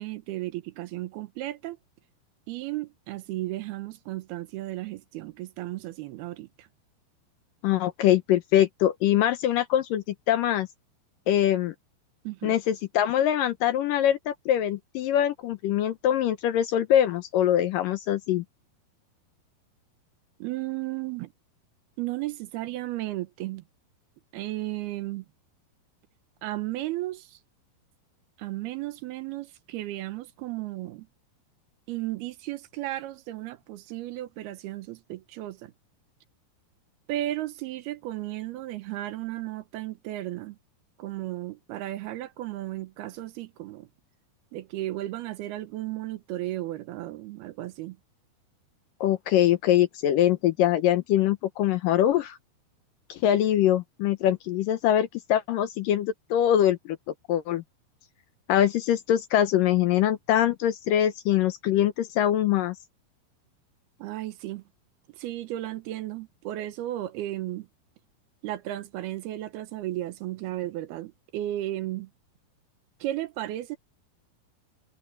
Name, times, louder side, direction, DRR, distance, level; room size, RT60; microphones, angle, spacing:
voice 1, 0.0-1.8 2.5-6.7 12.2-12.6 20.4-21.3 22.0-23.6 24.3-25.3 26.4-27.4 28.4-31.1 31.9-35.7 37.1-40.6 41.0-43.9 44.5-48.0 64.0-64.6 65.1-67.7 68.4-72.1 73.0-73.8, right 15 dB, 80° right, 2.9 m, -34 dB
voice 2, 7.6-10.7 11.3-11.7 12.4-18.4 49.0-52.4 53.1-57.0 57.3-57.6 58.5-62.8, left 11 dB, 75° left, 2.2 m, -23 dB
omnidirectional pair, 4.6 m